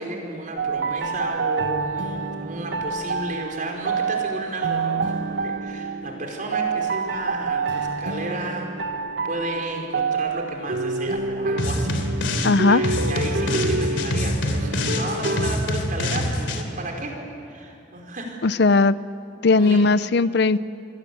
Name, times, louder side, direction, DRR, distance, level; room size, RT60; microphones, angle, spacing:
voice 1, 0.0-9.0 9.2-17.2 17.5-18.4 19.5-19.9, right 2 dB, 45° right, 1 dB, 5.0 m, -33 dB
sound 1, 0.6-15.5, right 4 dB, 65° right, 1.4 m, -27 dB
sound 2, 11.6-12.5 12.8-16.6, left 1 dB, 90° left, 3.1 m, -25 dB
voice 2, 12.4-12.8 18.4-19.0 19.4-20.6, left 3 dB, 65° left, 16 dB, 0.6 m, -17 dB
28.0 x 21.5 x 8.7 m, 2.8 s
head